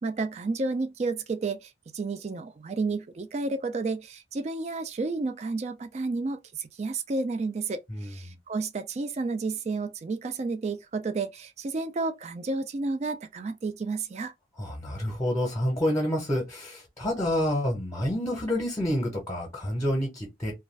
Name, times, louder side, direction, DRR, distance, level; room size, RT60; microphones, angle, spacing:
voice 1, 0.0-14.3, right 3 dB, 35° right, 0.3 m, -31 dB
voice 2, 14.6-20.5, left 1 dB, 15° left, 0.8 m, -28 dB
2.5 x 2.3 x 3.1 m
head